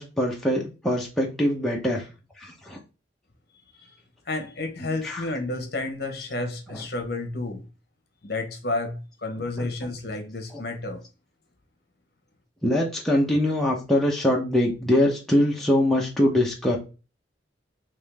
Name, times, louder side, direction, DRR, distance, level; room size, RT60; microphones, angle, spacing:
voice 1, 0.0-2.0 2.4-2.8 4.8-5.3 6.7-6.8 9.6-9.9 10.5-10.6 12.6-16.8, left 1 dB, ahead, 0.8 m, -23 dB
voice 2, 4.2-7.7 8.2-11.0, left 2 dB, 55° left, 1.0 m, -31 dB
3.7 x 3.1 x 3.4 m
head